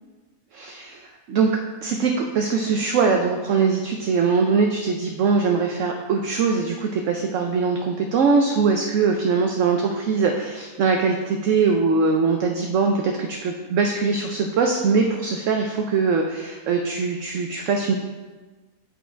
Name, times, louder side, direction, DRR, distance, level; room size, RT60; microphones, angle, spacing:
voice 1, 0.5-1.0 1.3-1.5 1.8-17.9, right 5 dB, 65° right, 2 dB, 0.9 m, -22 dB
8.3 x 4.3 x 4.5 m, 1.3 s
omnidirectional pair, 1.6 m